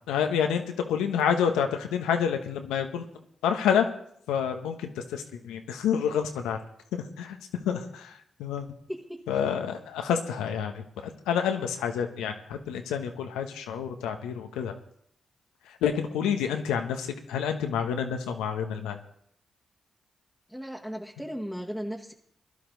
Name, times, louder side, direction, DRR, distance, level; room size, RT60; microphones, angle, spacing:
voice 1, 0.1-0.6 0.9-3.0 3.4-3.9 4.3-6.6 6.9-7.4 7.6-8.1 8.4-8.7 9.3-14.7 15.8-19.0, left 8 dB, 90° left, 6 dB, 1.2 m, -28 dB
voice 2, 8.9-9.2 20.5-22.1, equal, 5° right, -1 dB, 1.8 m, -36 dB
17.5 x 11.5 x 4.0 m, 0.69 s
hypercardioid pair, 40°, 0 cm